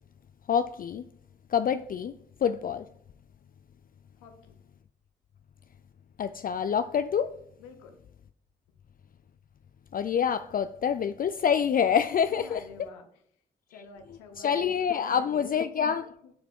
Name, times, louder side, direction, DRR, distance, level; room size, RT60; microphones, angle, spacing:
voice 1, 0.5-1.1 1.5-2.9 6.2-7.4 9.9-12.6 14.4-16.1, left 7 dB, 45° left, 0.4 m, -27 dB
voice 2, 4.1-4.6 7.6-8.0 12.3-13.1 13.7-16.0 16.2-16.3, left 5 dB, 90° left, 0.9 m, -49 dB
11.5 x 4.9 x 3.6 m
hypercardioid pair, 45°, 21 cm